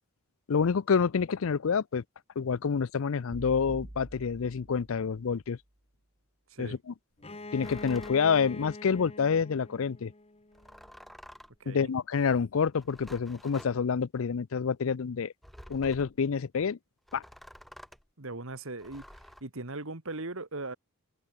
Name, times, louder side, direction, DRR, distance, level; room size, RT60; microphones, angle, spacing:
voice 1, 0.5-2.0 2.4-5.6 6.6-6.9 7.5-10.1 11.7-15.3 15.7-16.8 17.1-17.2, left 6 dB, 65° left, 0.5 m, -28 dB
sound 1, 3.3-5.5, right 1 dB, 30° right, 1.5 m, -47 dB
Bowed string instrument, 7.2-10.9, left 2 dB, 30° left, 2.2 m, -44 dB
sound 2, 7.6-8.2 10.5-11.6 12.7-13.7 15.4-16.2 17.1-18.1 18.8-19.4, equal, ahead, 3.2 m, -50 dB
voice 2, 11.6-11.9 18.2-20.8, right 2 dB, 65° right, 2.1 m, -39 dB
head